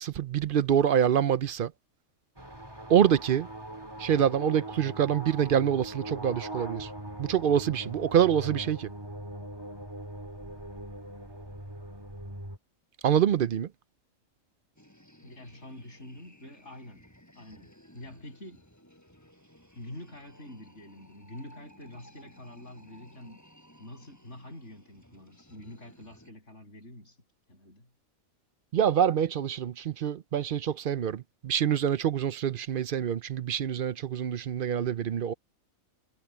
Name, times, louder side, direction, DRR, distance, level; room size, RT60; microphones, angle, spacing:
voice 1, 0.0-1.7 2.9-3.5 4.0-6.9 7.2-8.9 13.0-13.7 28.7-35.3, right 9 dB, 55° right, 0.6 m, -26 dB
sound 1, 2.4-12.6, right 1 dB, 15° right, 3.1 m, -41 dB
sound 2, 14.8-26.3, equal, 10° left, 5.5 m, -57 dB
voice 2, 15.2-17.0 17.3-18.6 19.8-23.4 23.8-27.2 27.5-27.9, left 1 dB, 55° left, 7.8 m, -46 dB
omnidirectional pair, 1.4 m